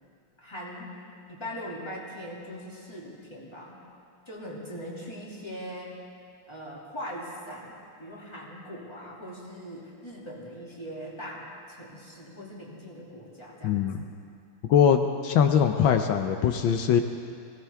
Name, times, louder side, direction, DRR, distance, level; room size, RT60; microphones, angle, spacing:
voice 1, 0.4-0.9 1.3-3.8 4.3-5.9 6.5-14.1, equal, 10° left, -5 dB, 2.6 m, -41 dB
voice 2, 13.6-14.0 14.7-17.0, left 8 dB, 70° left, 7 dB, 1.4 m, -22 dB
22.0 x 17.0 x 3.5 m, 2.4 s
omnidirectional pair, 2.4 m